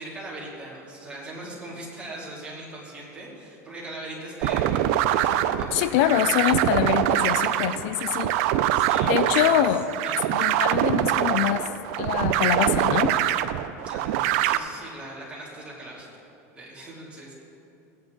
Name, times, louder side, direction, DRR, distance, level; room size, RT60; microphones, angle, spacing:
voice 1, 0.0-6.5 8.7-9.6 10.0-10.3 13.9-16.2 16.5-17.3, right 1 dB, 15° right, -5 dB, 2.9 m, -40 dB
sound 1, 4.4-14.6, right 12 dB, 60° right, 0.5 m, -24 dB
voice 2, 5.7-8.3 9.1-9.9 10.3-11.7 12.0-13.1, left 11 dB, 60° left, 12 dB, 0.4 m, -24 dB
16.5 x 9.4 x 3.9 m, 2.8 s
supercardioid pair, 140°, 8 cm